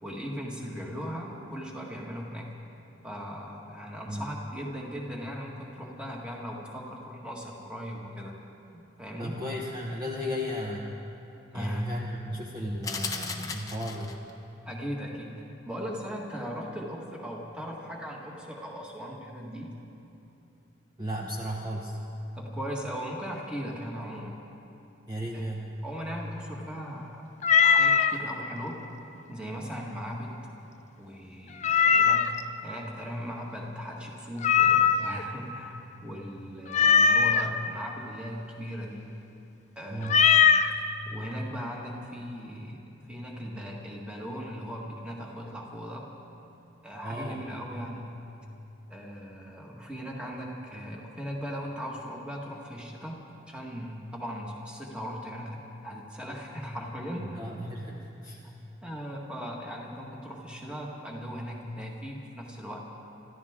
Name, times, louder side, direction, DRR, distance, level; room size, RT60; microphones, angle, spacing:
voice 1, 0.0-2.5 3.0-8.3 8.7-9.4 11.5-11.8 14.6-19.7 22.3-24.4 25.3-25.5 25.8-27.2 27.6-28.8 29.3-30.5 31.0-32.4 32.6-39.1 39.7-40.3 41.1-42.8 43.1-46.1 46.8-48.0 48.9-57.4 58.4-62.8, equal, 5° right, -2 dB, 1.7 m, -38 dB
voice 2, 9.2-11.0 11.5-14.1 21.0-22.0 25.1-25.7 39.9-40.3 47.0-47.9 57.2-58.4, equal, 20° right, -3 dB, 1.0 m, -35 dB
sound 1, 12.8-14.3, left 4 dB, 20° left, 0.9 m, -36 dB
Meow, 27.4-28.2 31.6-32.4 34.4-35.2 36.7-37.4 40.1-40.7, left 6 dB, 35° left, 0.4 m, -20 dB
26.5 x 13.5 x 3.7 m, 2.9 s
head